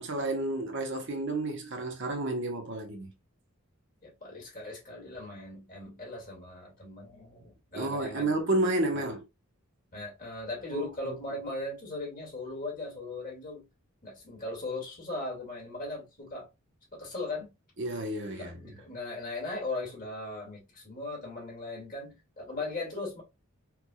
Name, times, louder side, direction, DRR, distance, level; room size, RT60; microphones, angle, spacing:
voice 1, 0.0-3.1 7.7-9.2 10.7-11.2 17.8-18.6, right 2 dB, 60° right, 1.0 m, -31 dB
voice 2, 4.0-8.3 8.9-9.0 9.9-13.6 14.0-16.5 16.9-17.5 18.4-23.2, left 2 dB, 40° left, 2.2 m, -38 dB
4.6 x 2.5 x 2.3 m
head